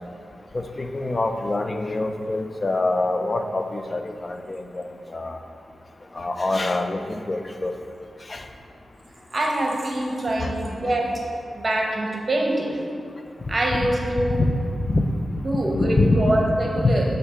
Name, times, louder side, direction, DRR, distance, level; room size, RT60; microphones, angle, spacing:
voice 1, 0.5-4.8 5.1-5.4 6.2-7.7 8.3-8.4 10.4-10.5 13.7-13.9 14.4-14.5 14.9-15.0 15.7-16.2 16.8-17.0, left 2 dB, 30° left, 6 dB, 0.3 m, -24 dB
voice 2, 9.3-11.2 11.5-12.8 13.5-14.4 15.4-17.0, right 1 dB, 35° right, 0 dB, 0.8 m, -24 dB
6.6 x 2.7 x 5.5 m, 2.3 s
wide cardioid pair, 135°, 0 cm